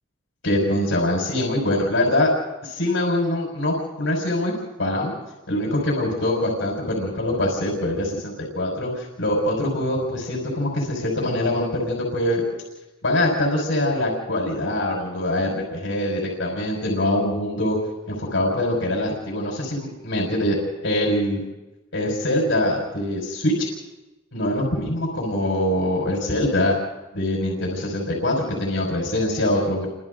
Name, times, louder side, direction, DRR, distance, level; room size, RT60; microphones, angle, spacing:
voice 1, 0.4-2.3 2.6-4.5 4.8-5.1 5.5-12.4 13.0-17.8 18.1-20.6 20.8-21.4 21.9-23.7 24.3-26.7 27.1-29.9, left 1 dB, 75° left, -2 dB, 5.6 m, -23 dB
29.0 x 25.0 x 4.0 m, 1.0 s
head